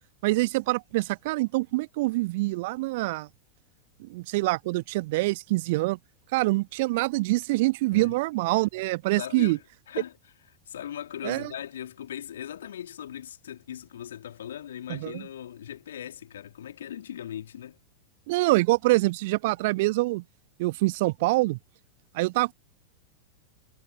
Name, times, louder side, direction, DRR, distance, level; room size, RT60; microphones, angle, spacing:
voice 1, 0.2-3.3 4.0-6.0 6.3-9.6 11.2-11.5 14.9-15.2 18.3-20.2 20.6-21.6 22.1-22.5, right 21 dB, 50° right, 1.2 m, -25 dB
voice 2, 9.2-10.2 10.7-17.8, left 10 dB, 65° left, 2.9 m, -39 dB
figure-of-eight pair, 90°, 0 cm